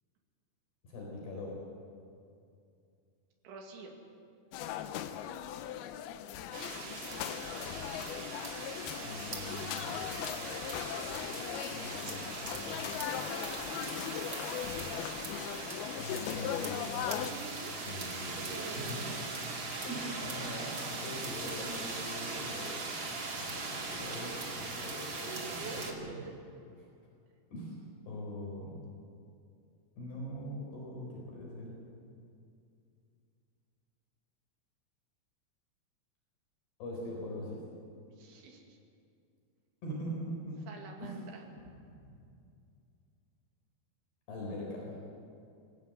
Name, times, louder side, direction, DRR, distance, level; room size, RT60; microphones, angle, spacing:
voice 1, 0.8-1.6 9.0-10.2 11.7-12.9 16.0-17.3 17.8-19.1 19.8-22.8 23.3-26.2 27.5-27.8 28.0-28.8 30.0-31.8 36.8-37.6 39.8-40.6 41.0-41.2 44.3-45.0, equal, 60° left, -3 dB, 6.3 m, -42 dB
voice 2, 3.4-4.0 17.2-17.7 18.4-19.2 25.2-26.3 38.2-38.8 40.7-42.2, right 5 dB, 75° right, 2 dB, 4.6 m, -47 dB
sound 1, 4.5-17.3, left 10 dB, 80° left, 2.2 m, -39 dB
sound 2, 6.5-25.9, right 3 dB, 40° right, 2.0 m, -40 dB
25.0 x 16.5 x 8.1 m, 2.5 s
omnidirectional pair, 5.4 m